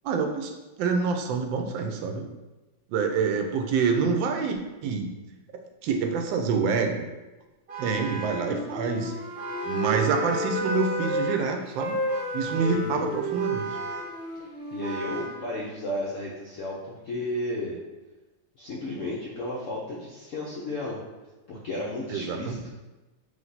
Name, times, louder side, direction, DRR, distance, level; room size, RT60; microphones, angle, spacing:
voice 1, 0.0-0.5 0.8-2.3 2.9-5.1 5.5-7.1 7.8-9.1 9.6-11.9 12.3-13.7 22.1-22.6, right 5 dB, 80° right, 4 dB, 1.3 m, -27 dB
Vehicle horn car horn honking, 7.7-8.6 9.4-11.5 12.1-12.9 13.3-14.2 14.8-15.4, right 1 dB, 60° right, 1.1 m, -36 dB
Wind instrument woodwind instrument, 8.3-11.3 11.7-15.6, right 1 dB, 25° right, 1.0 m, -32 dB
voice 2, 12.7-13.1 14.7-17.8 18.6-21.0 21.5-22.7, left 1 dB, 75° left, -4 dB, 0.7 m, -33 dB
3.3 x 3.2 x 3.9 m, 1.1 s
omnidirectional pair, 2.0 m